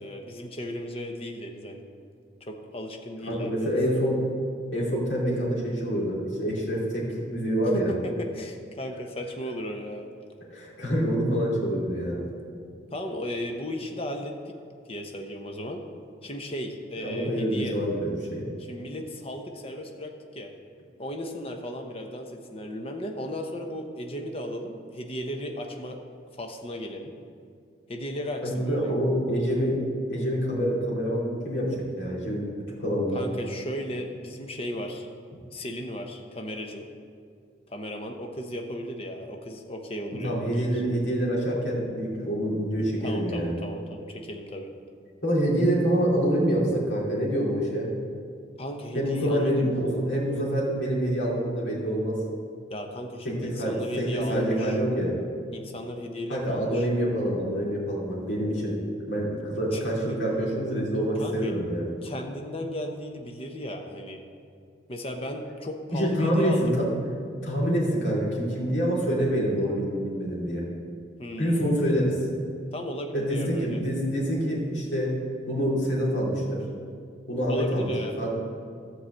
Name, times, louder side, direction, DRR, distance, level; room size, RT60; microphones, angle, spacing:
voice 1, 0.0-1.9 2.4-3.7 7.7-10.1 12.9-14.6 14.9-15.8 16.2-17.8 18.6-20.5 21.0-26.0 26.3-27.1 27.9-29.0 33.1-35.1 35.5-36.9 37.7-40.8 43.0-44.7 48.6-49.7 52.7-54.8 55.5-56.9 59.7-60.2 61.2-61.5 62.0-64.2 64.9-66.8 71.2-71.7 72.7-73.8 77.5-78.2, equal, 30° left, 3 dB, 0.8 m, -35 dB
voice 2, 3.2-4.3 4.7-7.9 10.5-12.3 17.0-18.5 28.4-32.5 32.8-33.3 40.1-43.6 45.2-47.9 48.9-52.3 53.2-55.2 56.3-58.8 59.1-61.9 65.9-66.9 67.4-70.7 71.4-72.2 73.1-75.2 75.5-76.6 77.3-77.9 78.2-78.3, equal, 75° left, -5 dB, 2.8 m, -26 dB
12.5 x 4.8 x 7.7 m, 2.2 s
head